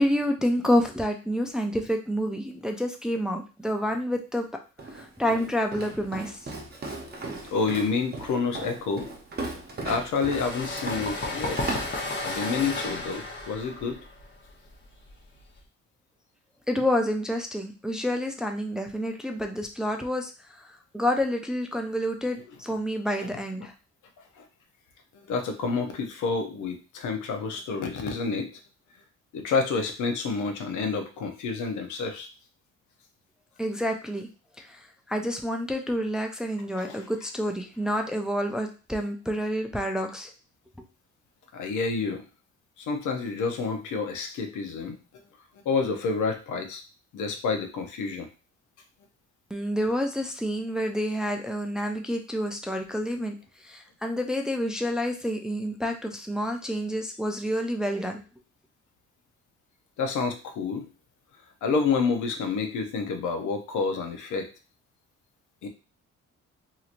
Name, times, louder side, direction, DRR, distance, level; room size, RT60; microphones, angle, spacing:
voice 1, 0.0-4.4 4.9-6.4 16.7-20.6 20.9-23.7 33.6-34.3 34.6-40.3 49.5-53.3 53.6-58.2, equal, ahead, 3 dB, 0.4 m, -28 dB
Walk footsteps, 4.8-12.5, right 3 dB, 30° right, 0.8 m, -37 dB
voice 2, 7.5-9.1 9.8-11.8 12.2-14.0 23.2-23.3 24.4-24.5 25.3-28.6 29.3-32.3 36.8-37.1 41.5-42.2 42.8-45.0 45.7-46.8 47.1-48.3 60.0-60.9 61.6-64.5 65.6-65.7, left 4 dB, 80° left, 5 dB, 0.7 m, -29 dB
sound 1, 10.1-15.6, left 2 dB, 40° left, 0.8 m, -33 dB
2.9 x 2.8 x 2.5 m, 0.33 s
cardioid pair, 90°, 30 cm